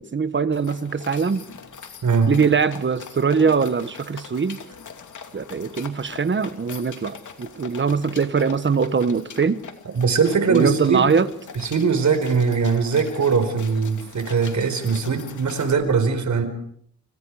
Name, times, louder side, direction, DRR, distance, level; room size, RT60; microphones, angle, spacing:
voice 1, 0.0-1.4 2.3-4.6 5.3-9.6 10.5-11.3, right 5 dB, 35° right, 1.2 m, -22 dB
sound 1, 0.5-15.7, left 6 dB, 60° left, 2.8 m, -42 dB
voice 2, 9.9-11.1 11.6-16.4, right 5 dB, 55° right, 4.9 m, -21 dB
30.0 x 27.0 x 4.9 m
wide cardioid pair, 135°, 34 cm